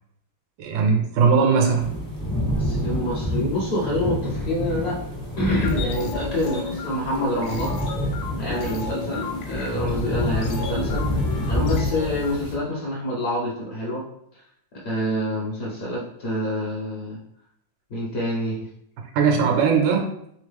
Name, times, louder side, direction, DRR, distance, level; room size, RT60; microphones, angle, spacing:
voice 1, 0.6-1.9 19.1-20.1, right 5 dB, 80° right, 3 dB, 1.4 m, -19 dB
sound 1, 1.7-12.6, left 1 dB, 15° left, 0.5 m, -28 dB
voice 2, 2.5-5.0 5.4-7.8 8.4-14.0 14.3-14.4 14.7-17.2 17.9-18.6, left 1 dB, 55° left, -4 dB, 1.2 m, -27 dB
sound 2, 5.5-12.3, left 4 dB, 75° left, 1.2 m, -34 dB
3.6 x 3.5 x 3.5 m, 0.73 s
omnidirectional pair, 2.1 m